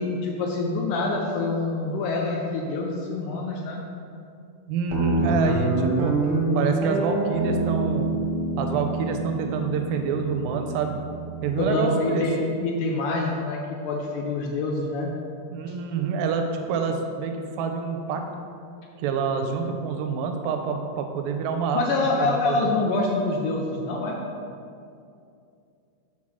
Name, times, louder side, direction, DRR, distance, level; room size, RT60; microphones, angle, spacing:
voice 1, 0.0-3.8 11.6-15.1 21.7-24.2, left 3 dB, 75° left, 0 dB, 2.0 m, -26 dB
voice 2, 4.7-6.1 6.5-8.1 8.6-11.0 11.4-12.3 15.5-18.2 19.0-22.0 22.3-22.7, right 5 dB, 80° right, 4 dB, 2.3 m, -27 dB
Guitar, 4.9-11.6, right 3 dB, 65° right, 1.0 m, -26 dB
7.3 x 4.6 x 6.1 m, 2.5 s
omnidirectional pair, 4.2 m